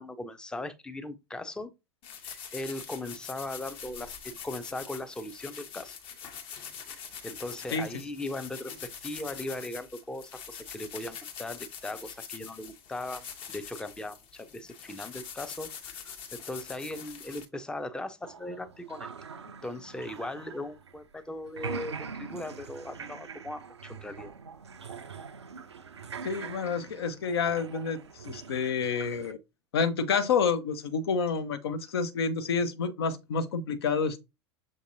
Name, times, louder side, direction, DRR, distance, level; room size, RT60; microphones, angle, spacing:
voice 1, 0.0-1.7 2.2-6.0 7.2-19.1 19.6-24.3, left 2 dB, 5° left, 0.5 m, -39 dB
sound 1, 2.0-17.4, left 7 dB, 40° left, 0.9 m, -44 dB
sound 2, 18.2-21.2 21.5-29.3, right 5 dB, 80° right, 0.4 m, -43 dB
voice 2, 26.2-28.0 28.2-29.4 29.7-34.2, left 5 dB, 65° left, 0.6 m, -28 dB
6.3 x 2.7 x 2.6 m
figure-of-eight pair, 80°, 14 cm